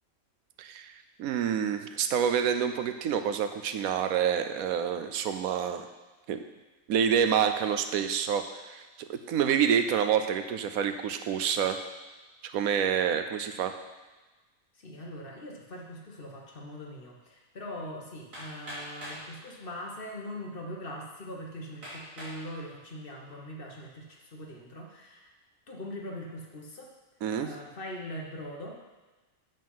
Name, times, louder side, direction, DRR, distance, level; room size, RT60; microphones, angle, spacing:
voice 1, 0.6-0.9 1.2-5.9 6.3-6.4 6.9-8.8 9.1-11.8 12.4-13.7 27.2-27.5, right 8 dB, 85° right, 8 dB, 1.1 m, -27 dB
voice 2, 14.7-25.3 25.7-26.9 27.4-28.8, left 1 dB, 45° left, -1 dB, 1.3 m, -41 dB
Hammer, 18.3-19.3 20.2-20.3 20.9-21.0 21.8-22.4 23.0-23.4, equal, 70° right, 3.3 m, -42 dB
7.7 x 5.5 x 5.5 m, 1.2 s
omnidirectional pair, 1.5 m